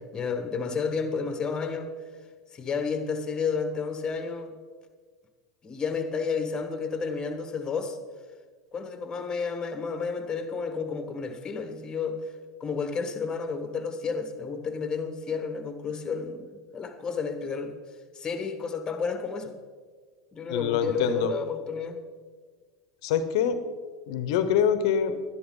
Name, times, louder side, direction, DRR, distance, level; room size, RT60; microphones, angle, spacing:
voice 1, 0.0-1.9 2.5-4.5 5.6-8.0 8.7-12.2 12.6-17.7 18.1-19.5 20.3-22.0, left 5 dB, 25° left, 8 dB, 1.3 m, -31 dB
voice 2, 20.5-21.3 23.0-23.6 24.1-25.1, left 8 dB, 65° left, 11 dB, 0.9 m, -25 dB
11.0 x 11.0 x 3.8 m, 1.6 s
hypercardioid pair, 90°, 3 cm